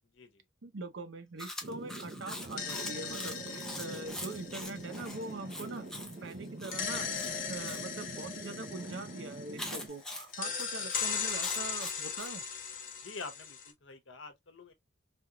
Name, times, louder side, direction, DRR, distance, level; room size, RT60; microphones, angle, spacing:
voice 1, 0.6-5.9 6.2-7.1 7.5-12.4, right 3 dB, 75° right, 0.7 m, -43 dB
Chewing mastication, 1.4-7.8 9.6-12.3, left 1 dB, 5° left, 0.6 m, -44 dB
sound 1, 1.6-9.9, right 2 dB, 40° right, 0.5 m, -45 dB
sound 2, 2.3-6.0 6.7-9.9 10.3-13.7, left 6 dB, 45° left, 0.9 m, -39 dB
voice 2, 10.8-11.1 13.0-14.7, left 3 dB, 90° left, 0.9 m, -47 dB
3.4 x 2.9 x 2.2 m
head